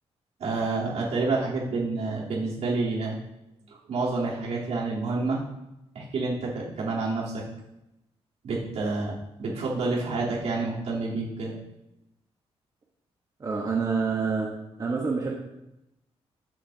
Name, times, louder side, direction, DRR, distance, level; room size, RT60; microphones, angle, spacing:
voice 1, 0.4-3.2 3.9-5.4 5.9-7.4 8.4-11.5, right 3 dB, 80° right, -6 dB, 3.6 m, -28 dB
voice 2, 13.4-14.5 14.8-15.3, right 5 dB, 35° right, -2 dB, 1.3 m, -27 dB
13.0 x 8.3 x 2.9 m, 0.90 s
wide cardioid pair, 145°, 11 cm